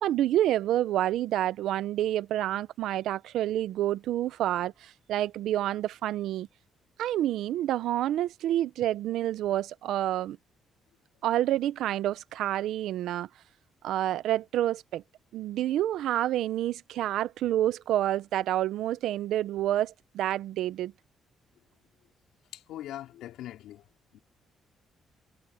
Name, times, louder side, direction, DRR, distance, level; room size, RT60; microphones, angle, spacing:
voice 1, 0.0-6.5 7.0-10.4 11.2-13.3 13.8-15.0 15.3-20.9, right 13 dB, 80° right, 0.8 m, -28 dB
voice 2, 22.5-23.9 24.1-24.2, left 13 dB, 85° left, 4.9 m, -41 dB
cardioid pair, 90°, 0 cm